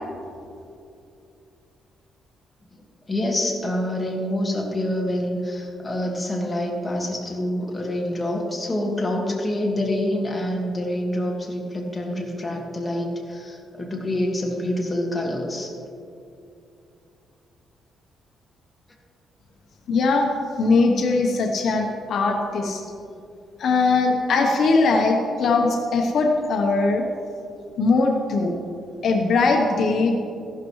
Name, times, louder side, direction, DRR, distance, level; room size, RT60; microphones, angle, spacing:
voice 1, 3.1-15.7, left 1 dB, 20° left, -1 dB, 1.8 m, -26 dB
voice 2, 19.9-20.3 20.6-22.8 23.6-27.1 27.8-28.5 29.0-30.2, left 3 dB, 60° left, 2 dB, 1.0 m, -20 dB
14.5 x 12.0 x 3.2 m, 2.6 s
cardioid pair, 125°, 0 cm